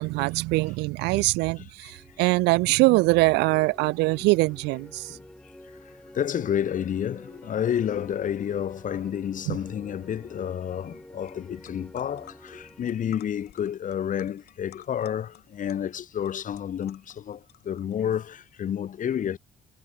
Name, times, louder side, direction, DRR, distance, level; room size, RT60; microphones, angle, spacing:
voice 1, 0.0-5.2 9.5-9.6, right 23 dB, 90° right, 0.4 m, -23 dB
voice 2, 1.6-1.9 5.1-5.2 6.1-19.4, left 9 dB, 50° left, 4.2 m, -30 dB
sound 1, 1.7-14.4, left 1 dB, 5° left, 6.6 m, -49 dB
sound 2, 11.3-11.4 11.6-18.2, left 14 dB, 70° left, 7.8 m, -53 dB
cardioid pair, 110°, 17 cm